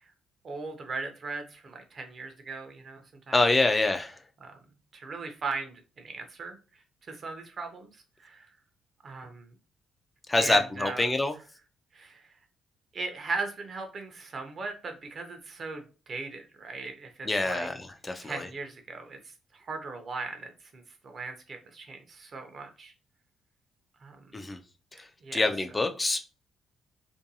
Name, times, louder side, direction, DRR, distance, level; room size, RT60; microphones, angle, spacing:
voice 1, 0.4-3.4 4.4-4.5 4.9-6.6 7.1-8.5 9.0-9.5 10.4-11.0 11.9-12.2 12.9-17.7 18.2-19.2 19.5-22.9 24.0-24.3 25.2-25.4, right 4 dB, 45° right, 5 dB, 0.6 m, -38 dB
voice 2, 3.3-4.2 10.3-11.4 17.2-18.5 24.3-24.6 24.9-26.2, left 2 dB, 20° left, 6 dB, 0.3 m, -26 dB
2.6 x 2.2 x 2.7 m, 0.35 s
cardioid pair, 90°, 0 cm